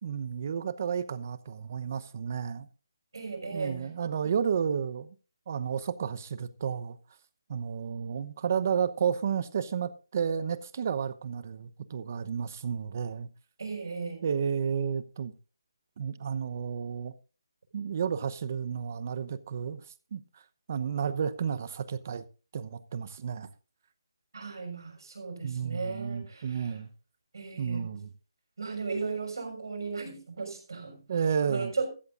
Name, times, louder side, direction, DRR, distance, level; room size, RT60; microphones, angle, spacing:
voice 1, 0.0-2.7 3.5-5.1 5.5-7.0 7.5-13.3 14.2-15.3 16.0-17.1 17.7-19.8 20.1-20.2 20.7-22.3 22.5-23.5 25.4-26.9 27.6-28.1 31.1-31.7, right 7 dB, 40° right, 0.9 m, -31 dB
voice 2, 3.1-3.9 4.2-4.3 13.6-14.2 24.3-26.7 27.3-27.9 28.6-31.0 31.4-31.9, right 4 dB, 70° right, 6.3 m, -36 dB
15.0 x 14.0 x 2.6 m
hypercardioid pair, 165°, 2 cm